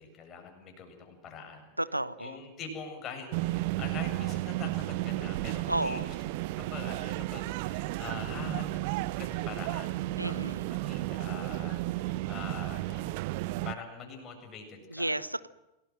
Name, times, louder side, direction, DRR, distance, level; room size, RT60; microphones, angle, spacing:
voice 1, 0.0-1.7 2.2-8.8 9.2-13.2 13.6-15.2, left 5 dB, 30° left, 4 dB, 7.6 m, -44 dB
voice 2, 1.8-2.4 5.7-6.1 10.2-10.7 14.9-15.5, right 1 dB, 85° right, 17 dB, 0.9 m, -32 dB
sound 1, 3.3-13.7, right 18 dB, 50° right, 0.8 m, -33 dB
28.0 x 19.0 x 7.7 m, 0.95 s
figure-of-eight pair, 90°, 0 cm